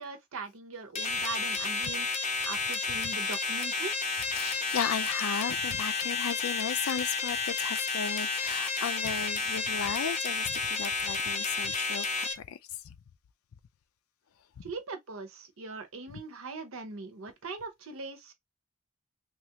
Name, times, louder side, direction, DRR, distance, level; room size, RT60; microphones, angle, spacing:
voice 1, 0.0-4.0 14.6-18.3, right 4 dB, 80° right, 0.8 m, -41 dB
sound 1, 0.9-12.3, left 4 dB, 30° left, 0.5 m, -31 dB
voice 2, 4.3-12.9 16.1-16.2, left 7 dB, 90° left, 0.4 m, -35 dB
3.1 x 2.4 x 2.8 m
head